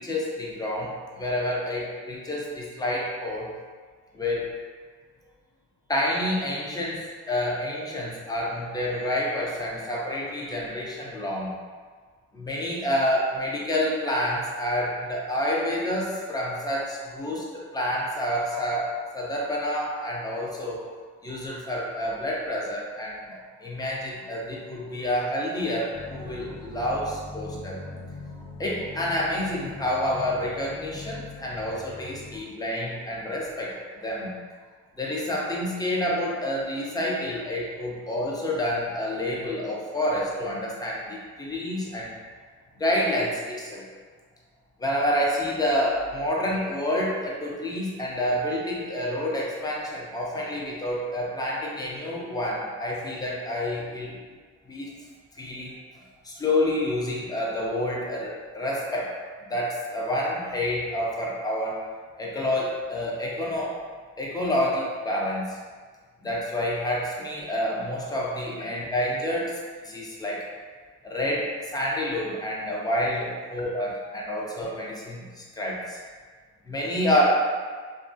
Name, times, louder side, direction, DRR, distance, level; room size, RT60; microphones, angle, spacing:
voice 1, 0.0-3.5 4.1-4.6 5.9-11.6 12.3-20.9 21.2-27.8 28.6-34.4 35.0-42.1 42.8-43.8 44.8-54.2 54.7-54.9 55.3-55.8 56.2-59.1 59.5-61.8 62.2-63.8 64.2-65.6 66.2-69.6 69.8-70.4 71.0-76.0 76.6-77.4, left 1 dB, 15° left, -4 dB, 0.4 m, -28 dB
sound 1, 25.9-32.4, left 2 dB, 75° left, 0.8 m, -41 dB
2.9 x 2.4 x 2.4 m, 1.5 s
cardioid pair, 140°, 30 cm